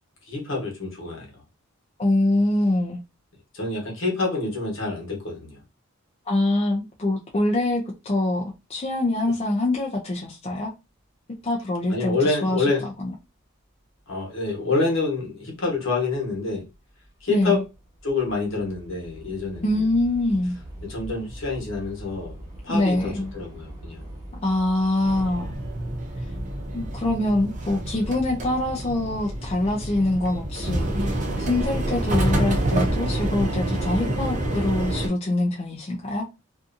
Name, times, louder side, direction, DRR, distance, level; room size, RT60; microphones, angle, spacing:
voice 1, 0.3-1.3 3.5-5.6 11.9-12.8 14.1-16.7 17.2-17.6 18.0-19.8 20.8-22.3 22.6-24.1, left 3 dB, 65° left, 1.1 m, -27 dB
voice 2, 2.0-3.0 6.3-10.7 11.4-12.7 13.0-13.1 17.3-17.6 19.6-20.6 22.7-23.3 24.4-25.5 26.2-26.3 26.7-36.3, left 1 dB, 30° left, 0.4 m, -24 dB
Train / Subway metro underground, 14.1-14.2 15.0-15.3 15.5-28.1, right 1 dB, 15° right, 1.2 m, -43 dB
sound 1, 25.0-35.1, right 1 dB, 35° right, 0.6 m, -27 dB
2.6 x 2.4 x 2.5 m
head